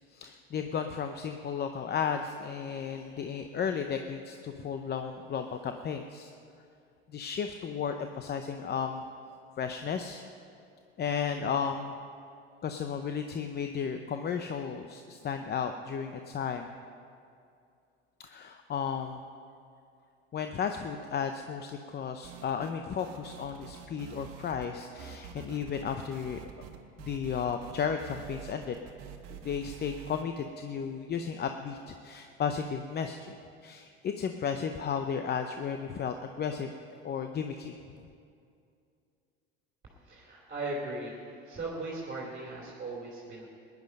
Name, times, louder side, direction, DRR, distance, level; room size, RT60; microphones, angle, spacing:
voice 1, 0.1-6.3 7.1-9.0 9.6-10.2 11.0-11.9 12.6-16.7 18.2-19.2 20.3-26.4 27.0-28.8 29.3-33.4 33.6-36.7 37.0-37.8, left 7 dB, 35° left, 6 dB, 0.7 m, -34 dB
sound 1, 22.2-22.7 23.0-24.7 25.0-30.2, right 8 dB, 60° right, 1.4 m, -47 dB
voice 2, 39.8-43.5, right 2 dB, 25° right, -3 dB, 2.8 m, -38 dB
16.5 x 10.5 x 5.3 m, 2.5 s
supercardioid pair, 95°, 31 cm